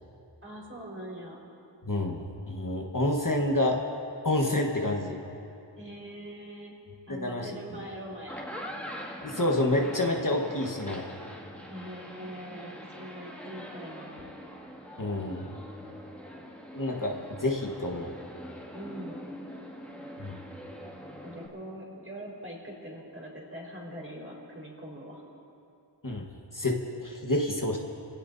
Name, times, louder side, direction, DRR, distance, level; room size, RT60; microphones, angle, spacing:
voice 1, 0.4-1.4 5.8-6.7 7.1-8.9 11.7-14.3 18.7-19.3 21.2-25.2, equal, 30° right, -4 dB, 4.6 m, -42 dB
voice 2, 1.8-3.8 4.2-5.2 7.1-7.5 9.2-11.0 15.0-15.5 16.7-18.1 20.2-20.4 26.0-26.3 26.5-27.8, left 1 dB, 45° left, 0 dB, 1.5 m, -28 dB
sound 1, 8.1-21.5, equal, 5° left, 2.2 m, -43 dB
26.0 x 17.5 x 2.7 m, 2.7 s
wide cardioid pair, 50°, 44 cm